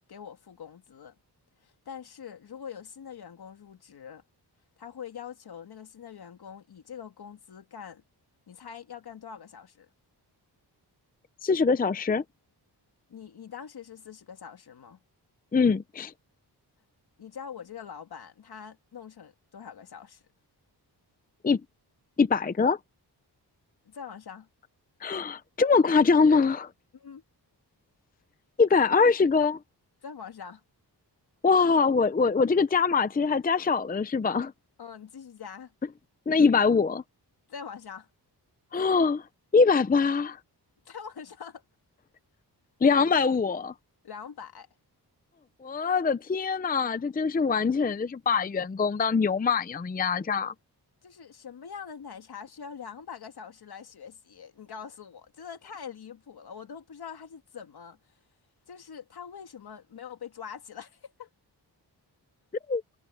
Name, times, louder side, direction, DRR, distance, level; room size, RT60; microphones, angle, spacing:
voice 1, 0.1-1.2 1.6-4.2 4.8-8.0 8.5-9.9 13.1-15.0 17.2-20.2 23.8-24.5 26.9-27.2 30.0-30.6 34.8-35.7 37.5-38.1 40.9-41.6 44.0-44.7 51.0-58.2 58.7-61.3, left 7 dB, 65° left, 2.3 m, -43 dB
voice 2, 11.4-12.2 15.5-16.1 21.4-21.6 22.2-22.8 25.0-26.7 28.6-29.6 31.4-34.5 36.3-37.0 38.7-39.2 39.5-40.4 42.8-43.7 45.6-50.5 62.7-62.8, left 5 dB, 20° left, 0.6 m, -23 dB
wide cardioid pair, 135°, 41 cm